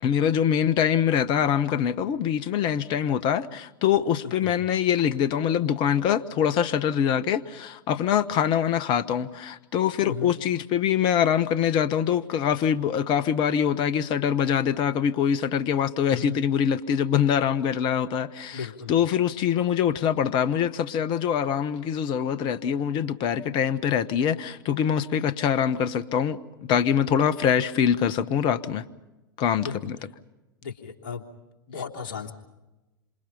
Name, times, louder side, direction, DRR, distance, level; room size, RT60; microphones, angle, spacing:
voice 1, 0.0-26.4 26.7-28.8 29.4-30.0, left 8 dB, 45° left, 1.3 m, -24 dB
voice 2, 16.1-16.4 18.5-18.9 29.6-29.9 30.6-31.2 31.7-32.3, left 6 dB, 65° left, 3.1 m, -35 dB
28.0 x 27.0 x 5.6 m
figure-of-eight pair, 85°, 12 cm